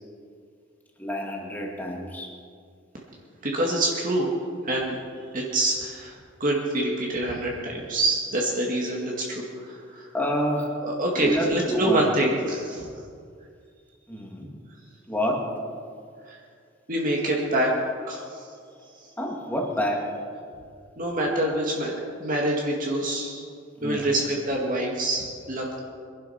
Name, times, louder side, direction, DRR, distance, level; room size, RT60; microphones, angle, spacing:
voice 1, 1.0-2.3 10.1-10.7 11.1-12.0 14.1-14.5 15.1-15.5 19.2-20.1 23.8-24.0, equal, 10° left, 0 dB, 2.2 m, -28 dB
voice 2, 3.4-4.3 4.6-5.0 5.3-10.1 10.8-12.9 16.2-16.4 16.9-17.7 18.1-18.6 18.9-19.1 21.0-23.4 23.8-25.8, right 1 dB, 45° right, -2 dB, 2.0 m, -26 dB
23.0 x 11.0 x 5.7 m, 2.2 s
head